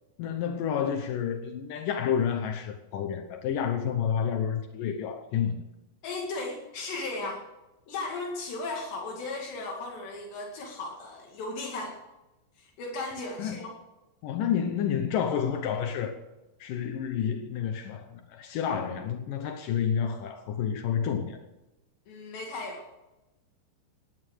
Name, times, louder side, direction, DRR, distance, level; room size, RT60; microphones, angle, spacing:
voice 1, 0.2-5.6 13.4-13.6 14.2-16.1 16.6-21.4, left 8 dB, 85° left, 1.9 m, -29 dB
voice 2, 6.0-7.4 7.9-12.0 12.6-13.7 22.1-23.0, left 3 dB, 70° left, 4.2 m, -36 dB
16.5 x 11.0 x 6.4 m
omnidirectional pair, 5.3 m